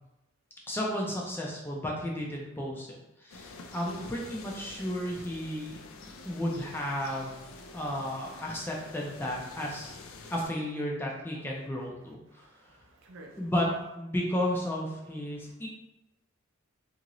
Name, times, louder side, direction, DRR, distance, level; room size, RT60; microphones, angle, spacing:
voice 1, 0.7-5.8 6.2-7.3 7.7-9.9 10.3-12.5 13.4-13.7 14.0-15.7, left 1 dB, 10° left, -2 dB, 0.4 m, -33 dB
sound 1, 3.3-10.5, left 3 dB, 80° left, 0.4 m, -48 dB
voice 2, 12.3-13.5 15.3-15.5, equal, 70° right, 1 dB, 0.5 m, -49 dB
2.8 x 2.5 x 2.9 m, 0.94 s
head